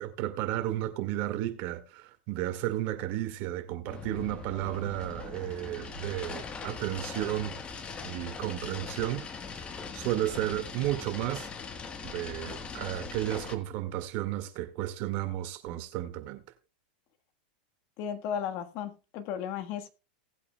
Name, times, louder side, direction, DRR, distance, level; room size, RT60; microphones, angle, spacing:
voice 1, 0.0-7.6 8.0-9.2 9.9-11.5 12.0-16.4, right 14 dB, 50° right, 1.9 m, -33 dB
sound 1, 3.9-13.5, left 5 dB, 20° left, 1.3 m, -41 dB
voice 2, 18.0-19.9, left 8 dB, 50° left, 1.4 m, -35 dB
18.5 x 8.4 x 2.3 m
hypercardioid pair, 125°, 5 cm